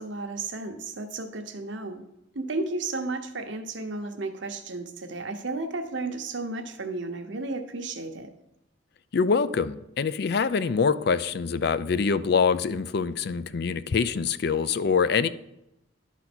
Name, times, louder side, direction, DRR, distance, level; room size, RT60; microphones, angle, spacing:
voice 1, 0.0-2.0 2.3-8.3, right 3 dB, 65° right, 6 dB, 1.0 m, -33 dB
voice 2, 9.1-15.3, left 5 dB, 55° left, 15 dB, 0.4 m, -25 dB
11.5 x 4.1 x 6.1 m, 0.85 s
head